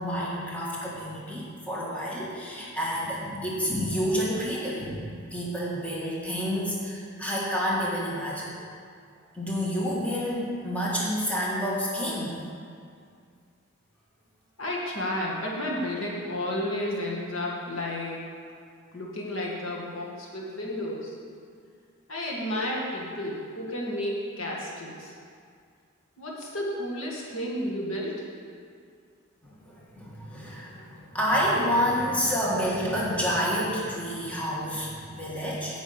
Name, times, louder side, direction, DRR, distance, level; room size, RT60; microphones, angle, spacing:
voice 1, 0.0-8.6 9.3-12.4 29.4-35.8, equal, 5° left, -6 dB, 1.6 m, -29 dB
voice 2, 14.6-18.2 18.9-21.2 22.1-25.1 26.2-28.3, left 1 dB, 70° left, -3 dB, 2.0 m, -32 dB
9.6 x 5.4 x 8.0 m, 2.2 s
head